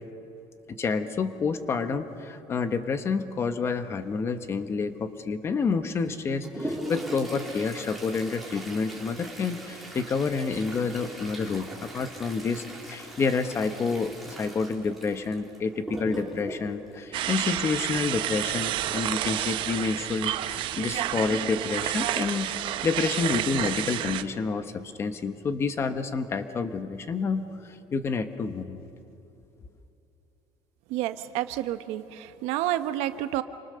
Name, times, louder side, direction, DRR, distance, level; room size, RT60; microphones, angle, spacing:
voice 1, 0.8-28.8, left 4 dB, 25° left, 10 dB, 1.0 m, -29 dB
Toilet flush, 6.0-18.0 19.9-20.0 20.3-20.4 21.2-21.3 21.9-22.2 22.6-22.8, right 1 dB, ahead, 3.2 m, -40 dB
sound 1, 17.1-24.2, right 12 dB, 50° right, 0.8 m, -30 dB
voice 2, 30.9-33.4, right 13 dB, 80° right, 11 dB, 1.0 m, -29 dB
28.0 x 25.0 x 6.8 m, 3.0 s
cardioid pair, 180°, 11 cm